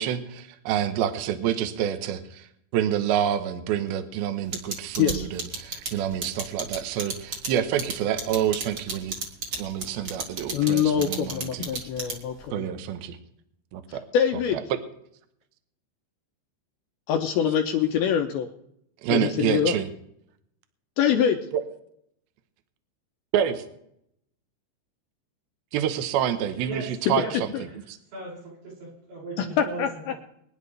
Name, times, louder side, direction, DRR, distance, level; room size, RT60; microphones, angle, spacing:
voice 1, 0.0-2.5 2.7-9.2 9.6-11.7 12.5-13.2 13.7-14.0 19.0-19.9 21.5-21.6 23.3-23.6 25.7-27.5, right 10 dB, 75° right, 8 dB, 2.5 m, -27 dB
sound 1, 4.5-12.4, right 3 dB, 40° right, 2.0 m, -32 dB
voice 2, 5.0-5.3 10.5-12.7 13.9-14.6 17.1-18.5 19.1-19.8 21.0-21.4 27.1-27.2 27.5-27.6 29.4-30.1, left 8 dB, 80° left, 4 dB, 2.3 m, -24 dB
voice 3, 26.6-27.6 28.1-29.9, right 3 dB, 90° right, -5 dB, 8.5 m, -37 dB
23.5 x 10.5 x 3.3 m, 0.73 s
omnidirectional pair, 5.2 m